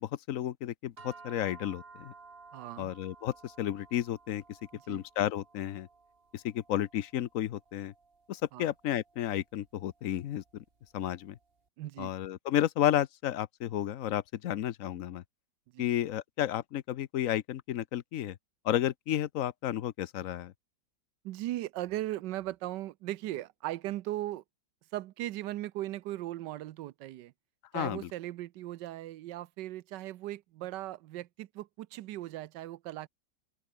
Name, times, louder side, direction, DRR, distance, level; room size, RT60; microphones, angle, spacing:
voice 1, 0.0-2.1 2.8-4.6 4.9-5.9 6.3-7.9 8.3-10.6 10.9-11.4 12.0-15.2 15.8-18.4 18.6-20.5 27.7-28.1, left 12 dB, 60° left, 1.0 m, -32 dB
sound 1, 1.0-11.4, right 4 dB, 35° right, 2.0 m, -56 dB
voice 2, 2.5-2.9 4.7-5.0 8.5-8.7 11.8-12.1 15.7-15.9 21.2-24.4 24.9-27.3 27.7-33.1, right 15 dB, 80° right, 1.3 m, -38 dB
open air
omnidirectional pair, 1.9 m